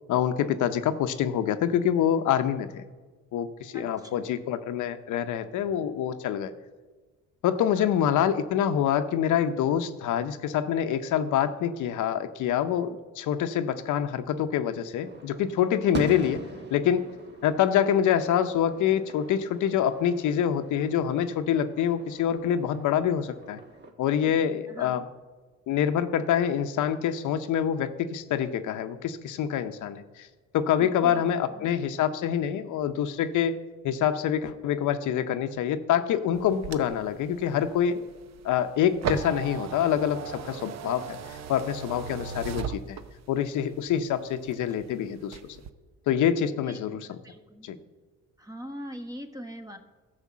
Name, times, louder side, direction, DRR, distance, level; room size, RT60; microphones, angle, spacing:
voice 1, 0.1-2.8 3.3-6.5 7.4-16.4 16.7-17.0 17.4-23.6 24.0-25.0 25.7-30.0 30.5-33.6 33.8-38.0 38.4-43.0 43.3-45.4 46.1-47.0 47.6-47.8, left 9 dB, 80° left, 9 dB, 0.7 m, -26 dB
voice 2, 3.7-4.2 24.2-24.3 24.7-24.9 30.8-31.7 46.6-46.8 47.2-47.7 48.4-49.8, equal, 10° right, 6 dB, 1.1 m, -42 dB
sound 1, 15.0-23.9, right 3 dB, 35° right, 1.3 m, -43 dB
sound 2, 36.3-43.4 43.9-44.9 45.2-45.7, right 7 dB, 60° right, 0.7 m, -37 dB
12.0 x 5.2 x 7.3 m, 1.3 s
cardioid pair, 90°, 30 cm